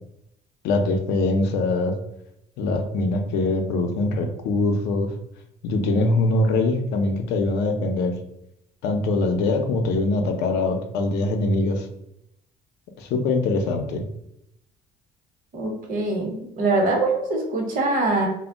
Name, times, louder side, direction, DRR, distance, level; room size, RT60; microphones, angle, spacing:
voice 1, 0.6-2.0 2.6-5.1 5.6-8.1 8.8-11.9 13.0-14.0, left 2 dB, 85° left, 5 dB, 0.5 m, -23 dB
voice 2, 15.5-18.3, right 2 dB, 50° right, 1 dB, 0.8 m, -23 dB
2.1 x 2.0 x 3.6 m, 0.81 s
cardioid pair, 110°, 17 cm